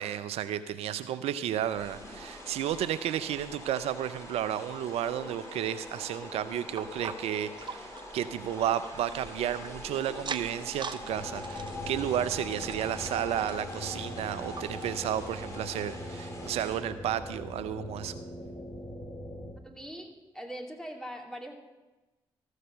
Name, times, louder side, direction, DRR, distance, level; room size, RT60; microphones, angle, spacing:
voice 1, 0.0-18.1, right 10 dB, 75° right, 13 dB, 0.5 m, -32 dB
sound 1, 1.6-16.8, left 2 dB, 30° left, 3.7 m, -43 dB
sound 2, 6.8-9.7 10.1-11.0 11.3-13.7 14.2-14.3 14.6-14.7 15.3-15.4, right 5 dB, 50° right, 0.7 m, -42 dB
sound 3, 11.1-19.5, equal, 50° left, 4.0 m, -42 dB
voice 2, 19.6-21.5, equal, 5° left, 1 dB, 2.6 m, -41 dB
14.0 x 6.6 x 6.7 m, 1.1 s
hypercardioid pair, 45°, 10 cm